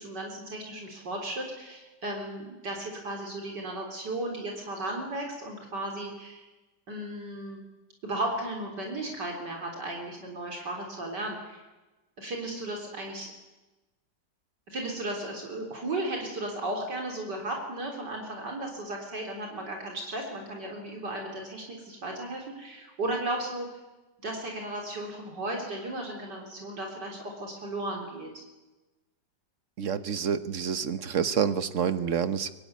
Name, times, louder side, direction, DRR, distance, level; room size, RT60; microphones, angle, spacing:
voice 1, 0.0-6.4 6.9-7.6 8.0-11.6 12.2-13.3 14.7-23.7 24.2-28.4, right 1 dB, 70° right, 1 dB, 4.3 m, -35 dB
voice 2, 29.8-32.5, right 7 dB, 50° right, 12 dB, 1.2 m, -28 dB
24.0 x 20.0 x 9.6 m, 1.1 s
omnidirectional pair, 1.9 m